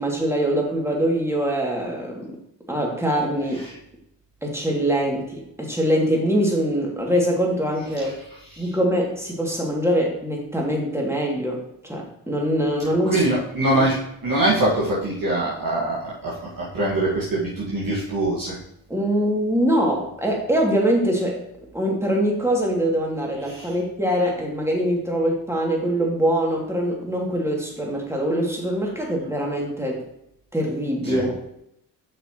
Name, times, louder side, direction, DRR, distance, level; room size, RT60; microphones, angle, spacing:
voice 1, 0.0-2.4 2.7-3.6 4.4-8.2 8.6-13.2 18.9-21.4 21.7-30.0 30.5-31.5, equal, 5° right, -2 dB, 2.7 m, -23 dB
voice 2, 13.1-18.5 23.5-23.7 31.0-31.2, right 1 dB, 45° right, -6 dB, 2.1 m, -23 dB
8.3 x 5.9 x 3.2 m, 0.76 s
hypercardioid pair, 40°, 47 cm